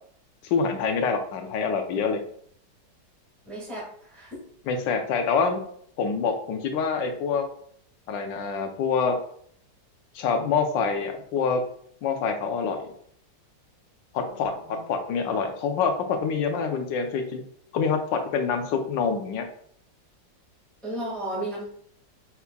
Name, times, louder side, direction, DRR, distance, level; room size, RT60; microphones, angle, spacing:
voice 1, 0.4-2.2 4.7-5.6 6.0-7.4 8.1-9.2 10.1-11.6 12.0-12.9 14.1-14.5 14.9-17.4 17.7-19.5, left 5 dB, 80° left, 5 dB, 1.3 m, -26 dB
voice 2, 3.4-3.8 4.1-4.4 14.3-14.8 20.8-21.6, right 1 dB, ahead, -7 dB, 1.6 m, -34 dB
5.7 x 3.4 x 2.2 m, 0.62 s
omnidirectional pair, 2.0 m